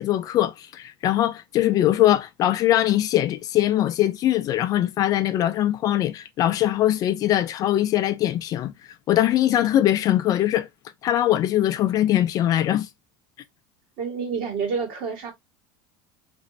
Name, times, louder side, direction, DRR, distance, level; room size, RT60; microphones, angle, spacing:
voice 1, 0.0-8.7 9.1-10.7 11.0-12.9, left 13 dB, 35° left, 0.4 m, -21 dB
voice 2, 14.0-15.3, right 5 dB, 55° right, 1.7 m, -28 dB
4.0 x 3.0 x 2.7 m
cardioid pair, 155°, 11 cm